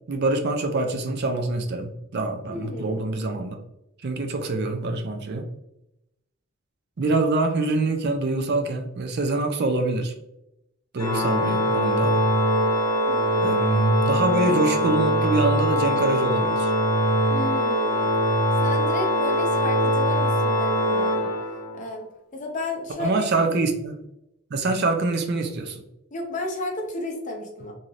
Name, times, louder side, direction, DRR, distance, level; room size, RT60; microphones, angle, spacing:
voice 1, 0.1-3.6 4.0-5.5 7.0-10.1 10.9-12.3 13.4-16.7 23.0-24.0 24.5-25.8, right 2 dB, 50° right, 4 dB, 0.4 m, -25 dB
voice 2, 2.5-3.0 13.1-13.6 17.3-18.1 18.6-21.3 21.7-23.3 26.1-27.7, left 2 dB, 35° left, 1 dB, 0.6 m, -33 dB
Organ, 11.0-21.9, equal, 85° left, 0.7 m, -22 dB
3.2 x 2.7 x 2.4 m, 0.86 s
head